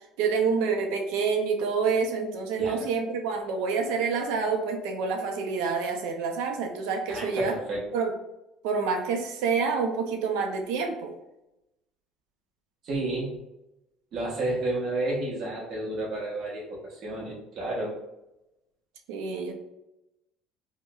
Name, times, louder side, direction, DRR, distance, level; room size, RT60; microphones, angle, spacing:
voice 1, 0.2-7.6 7.9-8.1 8.6-11.1 19.1-19.5, right 5 dB, 85° right, 4 dB, 0.5 m, -27 dB
voice 2, 7.1-7.8 12.8-13.3 14.1-18.0, right 2 dB, 40° right, -4 dB, 1.0 m, -31 dB
4.5 x 2.1 x 2.3 m, 0.91 s
cardioid pair, 160°, 0 cm